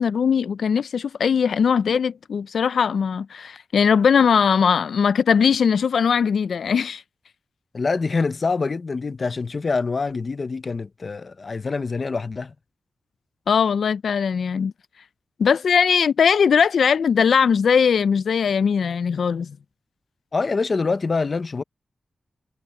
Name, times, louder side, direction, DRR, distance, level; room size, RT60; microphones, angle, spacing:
voice 1, 0.0-7.0 13.5-14.7 15.4-19.5, left 6 dB, 90° left, 0.3 m, -20 dB
voice 2, 7.7-12.5 20.3-21.6, left 4 dB, 40° left, 0.6 m, -25 dB
wide cardioid pair, 180°, 0 cm